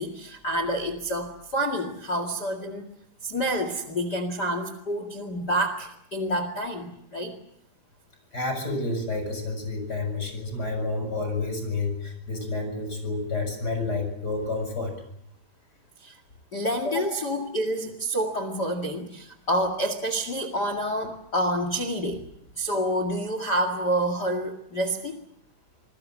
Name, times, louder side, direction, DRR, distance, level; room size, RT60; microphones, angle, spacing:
voice 1, 0.0-2.8 3.2-7.3 16.0-16.2 16.5-22.2 22.5-25.2, right 1 dB, 40° left, 9 dB, 1.5 m, -28 dB
voice 2, 8.3-14.9, left 3 dB, 20° left, 6 dB, 7.4 m, -29 dB
27.0 x 21.0 x 7.6 m, 0.74 s
omnidirectional pair, 5.3 m